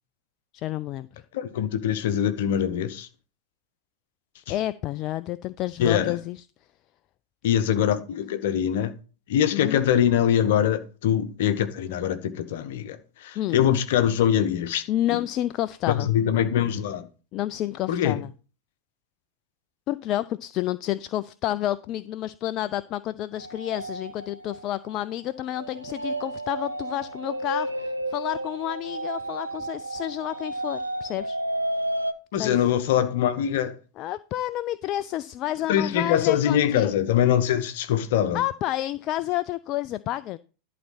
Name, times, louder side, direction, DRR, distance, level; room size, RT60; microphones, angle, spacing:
voice 1, 0.5-1.1 4.5-6.4 9.5-9.8 13.4-13.6 14.9-16.1 17.3-18.3 19.9-31.4 32.3-32.6 34.0-36.9 38.3-40.4, left 14 dB, 35° left, 0.3 m, -30 dB
voice 2, 1.3-3.1 5.8-6.2 7.4-8.9 9.3-15.2 15.9-17.1 17.9-18.2 32.3-33.8 35.7-38.4, left 9 dB, 55° left, 1.0 m, -23 dB
sound 1, 23.4-32.1, right 1 dB, 80° right, 0.5 m, -32 dB
11.0 x 4.1 x 5.7 m
figure-of-eight pair, 90°, 0 cm